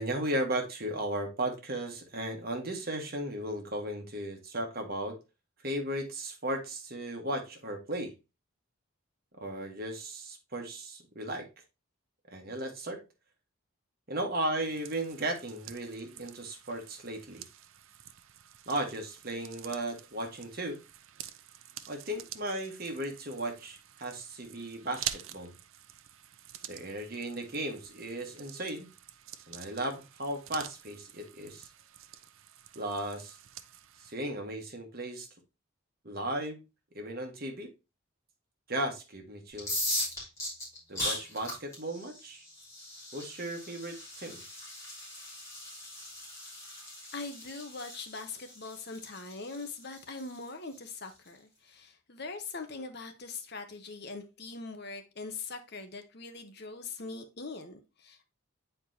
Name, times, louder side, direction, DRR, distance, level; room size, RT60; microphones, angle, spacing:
voice 1, 0.0-5.2 5.6-8.1 9.3-11.5 12.3-13.0 14.1-17.5 18.7-20.8 21.9-25.5 26.7-28.9 29.5-31.7 32.7-33.4 34.0-35.3 36.0-36.6 36.9-37.7 38.7-39.8 40.9-42.4 43.1-44.4, right 1 dB, 45° right, 1.4 m, -36 dB
sound 1, 14.6-34.1, right 11 dB, 75° right, 0.5 m, -47 dB
sound 2, 39.5-51.3, left 1 dB, 15° left, 3.1 m, -39 dB
voice 2, 47.1-58.3, left 3 dB, 50° left, 1.0 m, -42 dB
8.5 x 4.5 x 2.7 m
head